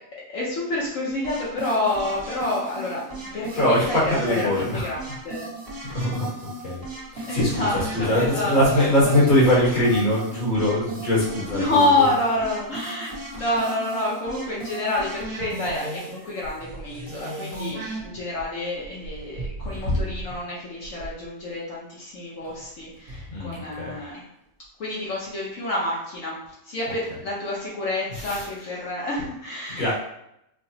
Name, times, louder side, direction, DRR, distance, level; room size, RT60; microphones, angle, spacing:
voice 1, 0.3-5.0 5.2-6.1 7.3-9.1 11.5-24.2 24.8-26.4 26.6-30.0, left 2 dB, 70° left, -6 dB, 1.2 m, -28 dB
sound 1, 1.2-18.0, right 2 dB, 45° right, 1.1 m, -36 dB
voice 2, 3.6-4.8 5.8-6.8 7.1-7.7 7.9-12.1 23.3-24.0 28.1-28.5 29.7-30.0, left 1 dB, 40° left, -6 dB, 1.3 m, -22 dB
sound 2, 16.4-17.2 18.0-20.5 20.8-21.3 22.4-23.6 24.4-24.5, equal, 85° right, 1.3 m, -34 dB
4.8 x 2.1 x 2.7 m, 0.80 s
omnidirectional pair, 1.4 m